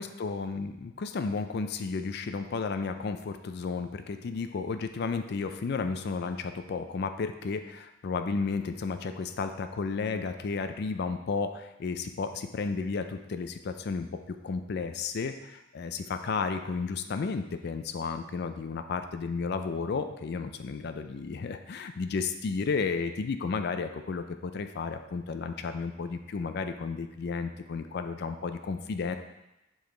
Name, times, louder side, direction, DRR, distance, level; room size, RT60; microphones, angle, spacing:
voice 1, 0.0-14.1 14.4-29.2, left 4 dB, 55° left, 8 dB, 0.4 m, -33 dB
5.3 x 4.8 x 3.8 m, 0.95 s
head